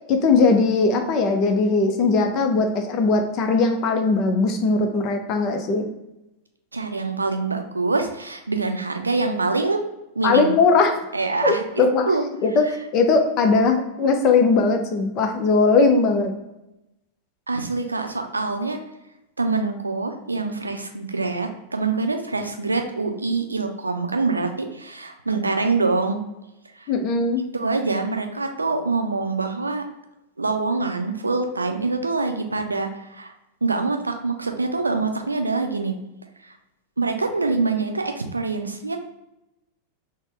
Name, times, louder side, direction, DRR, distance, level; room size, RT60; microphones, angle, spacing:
voice 1, 0.1-5.9 10.2-11.0 11.4-12.1 12.4-12.7 12.9-16.3 26.9-27.4, left 4 dB, 40° left, 5 dB, 0.6 m, -19 dB
voice 2, 6.7-9.8 10.2-10.6 11.1-12.2 17.5-18.8 19.4-26.2 26.8-26.9 27.5-29.8 30.4-33.3 33.6-35.9 36.4-36.5 37.0-39.0, right 3 dB, 80° right, 5 dB, 0.4 m, -25 dB
4.0 x 2.1 x 3.4 m, 0.92 s
figure-of-eight pair, 90°, 0 cm